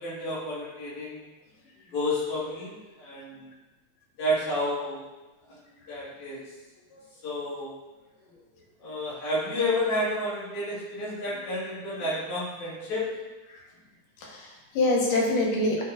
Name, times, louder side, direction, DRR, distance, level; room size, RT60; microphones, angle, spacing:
voice 1, 0.0-1.2 1.9-3.5 4.2-5.0 5.9-6.4 7.2-7.7 8.8-13.1, left 1 dB, 70° left, -7 dB, 3.1 m, -30 dB
voice 2, 14.2-15.8, left 2 dB, 85° left, -1 dB, 2.7 m, -26 dB
11.0 x 4.2 x 2.4 m, 1.2 s
omnidirectional pair, 3.6 m